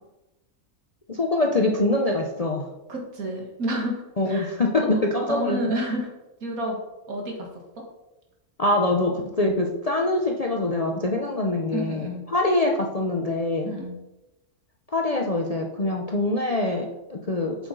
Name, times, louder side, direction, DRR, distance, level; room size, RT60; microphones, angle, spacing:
voice 1, 1.1-2.7 4.2-5.7 8.6-13.7 14.9-17.6, left 2 dB, 35° left, 1 dB, 0.6 m, -24 dB
voice 2, 2.9-4.6 4.9-5.0 5.3-6.1 6.4-6.8 7.1-7.5 11.7-12.3 13.6-14.0, equal, 80° right, 1 dB, 2.1 m, -30 dB
7.9 x 7.1 x 3.9 m, 1.0 s
omnidirectional pair, 1.5 m